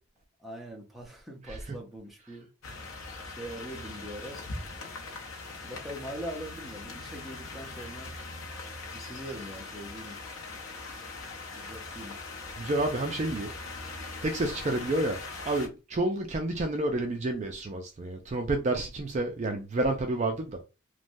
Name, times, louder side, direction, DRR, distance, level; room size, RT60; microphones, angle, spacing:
voice 1, 0.4-2.5 3.2-4.4 5.6-8.1 8.9-10.2 11.5-12.2, right 1 dB, ahead, 0.6 m, -42 dB
sound 1, 2.6-15.7, left 3 dB, 80° left, 0.7 m, -41 dB
voice 2, 12.6-13.5 14.2-20.6, right 2 dB, 35° right, 0.3 m, -30 dB
3.2 x 2.1 x 2.5 m
head